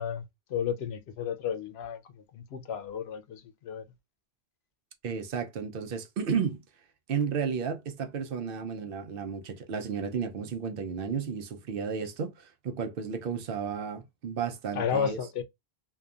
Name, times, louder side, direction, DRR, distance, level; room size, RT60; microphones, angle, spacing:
voice 1, 0.0-3.8 14.7-15.4, left 7 dB, 90° left, 0.8 m, -33 dB
voice 2, 5.0-6.6 7.1-15.2, right 6 dB, 65° right, 0.7 m, -33 dB
2.7 x 2.3 x 2.3 m
omnidirectional pair, 1.0 m